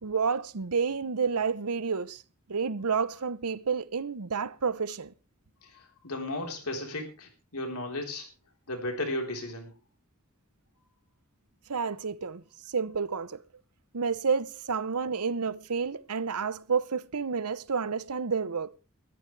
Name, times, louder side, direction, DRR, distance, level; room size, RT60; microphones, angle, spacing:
voice 1, 0.0-2.2 2.5-5.1 11.7-13.4 13.9-18.7, right 5 dB, 90° right, 0.9 m, -30 dB
voice 2, 5.6-8.3 8.7-9.7, left 1 dB, 80° left, 4.1 m, -35 dB
20.0 x 13.5 x 3.3 m
head